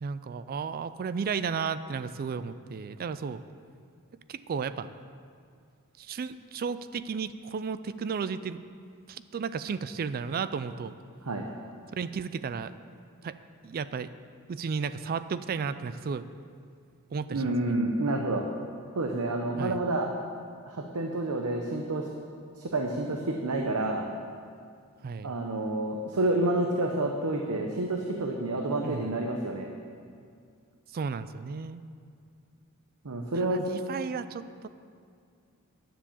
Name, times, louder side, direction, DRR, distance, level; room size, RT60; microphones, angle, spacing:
voice 1, 0.0-3.4 4.3-4.9 6.0-8.6 9.1-10.9 12.0-12.7 13.2-13.4 13.6-14.1 14.5-16.2 17.1-17.8 19.6-19.8 25.0-25.3 28.8-29.2 30.9-31.8 33.3-34.7, right 5 dB, 45° right, 14 dB, 0.3 m, -33 dB
voice 2, 17.3-18.4 19.0-20.1 20.7-22.1 22.6-24.1 25.2-29.7 33.0-33.6, right 2 dB, 80° right, 2 dB, 0.8 m, -29 dB
10.0 x 7.3 x 7.1 m, 2.2 s
head